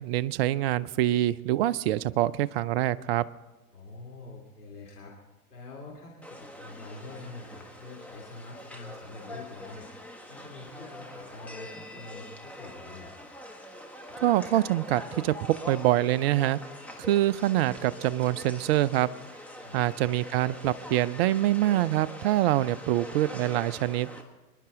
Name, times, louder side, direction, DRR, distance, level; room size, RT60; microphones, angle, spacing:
voice 1, 0.0-3.3 14.2-16.6 17.0-19.1 19.7-24.1, right 14 dB, 45° right, 17 dB, 0.6 m, -25 dB
voice 2, 3.7-5.1 5.5-9.9 10.3-13.3 19.6-19.8, left 3 dB, 85° left, -4 dB, 2.9 m, -45 dB
sound 1, 6.2-24.2, left 1 dB, 5° left, 1.5 m, -44 dB
24.5 x 11.0 x 3.7 m, 1.1 s
figure-of-eight pair, 90°, 45 cm